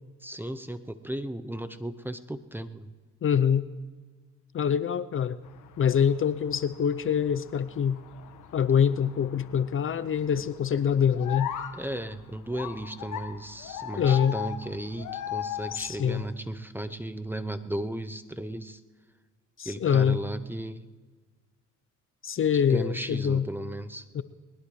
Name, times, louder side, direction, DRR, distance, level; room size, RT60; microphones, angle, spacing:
voice 1, 0.2-2.9 11.7-18.8 19.6-20.8 22.5-24.1, right 1 dB, 5° right, 10 dB, 0.7 m, -35 dB
voice 2, 3.2-3.7 4.5-5.4 5.8-8.0 8.5-11.5 14.0-14.3 15.7-16.2 19.6-20.2 22.2-23.5 24.1-24.2, left 8 dB, 45° left, 15 dB, 0.6 m, -25 dB
sound 1, 5.4-16.3, left 10 dB, 80° left, 1.3 m, -39 dB
20.5 x 20.0 x 3.2 m, 1.4 s
cardioid pair, 90°, 30 cm